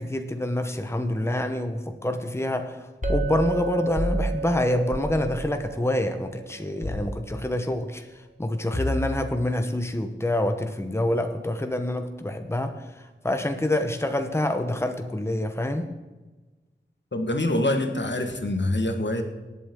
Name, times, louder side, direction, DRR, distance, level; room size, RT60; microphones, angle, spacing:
voice 1, 0.0-2.8 3.1-8.0 8.4-12.7 13.2-15.8, left 1 dB, 15° left, 6 dB, 1.0 m, -26 dB
sound 1, 3.0-3.3 4.0-4.2 4.9-5.2 6.8-7.1 8.7-9.3, left 1 dB, 40° left, 1.5 m, -28 dB
Chink clink, 3.0-7.5, right 8 dB, 40° right, 1.4 m, -35 dB
voice 2, 17.1-19.2, left 1 dB, 70° left, 5 dB, 1.5 m, -25 dB
19.0 x 8.5 x 3.7 m, 1.2 s
wide cardioid pair, 40°, 19 cm